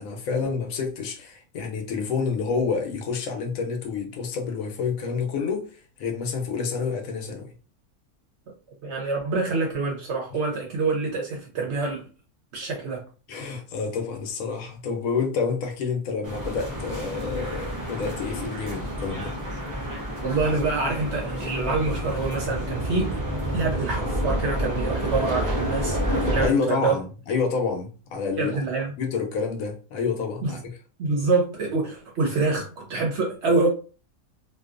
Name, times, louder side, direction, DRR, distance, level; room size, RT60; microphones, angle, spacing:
voice 1, 0.0-5.7 6.0-7.5 13.3-19.3 26.4-28.5 29.0-30.6, left 5 dB, 75° left, 1.0 m, -28 dB
voice 2, 8.8-12.0 12.5-13.0 20.2-23.2 23.5-27.0 28.4-28.9 30.4-30.6 31.0-33.7, right 3 dB, 60° right, 0.7 m, -26 dB
sound 1, 16.2-26.5, equal, 30° right, 0.3 m, -29 dB
2.6 x 2.2 x 2.4 m
omnidirectional pair, 1.5 m